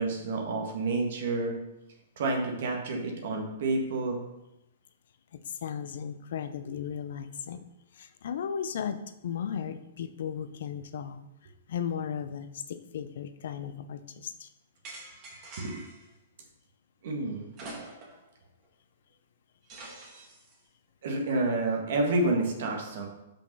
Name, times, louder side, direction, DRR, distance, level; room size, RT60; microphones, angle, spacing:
voice 1, 0.0-1.5 2.2-4.2 15.6-15.8 17.0-17.5 21.0-23.1, right 2 dB, 65° right, 1 dB, 1.6 m, -29 dB
voice 2, 5.3-7.7 7.9-11.2 11.7-14.5, left 8 dB, 65° left, 10 dB, 0.6 m, -36 dB
sound 1, 14.8-16.1 17.5-18.3 18.6-18.7 19.7-20.5, right 2 dB, 35° right, 2.2 m, -45 dB
5.5 x 5.2 x 5.4 m, 0.89 s
hypercardioid pair, 125°, 0 cm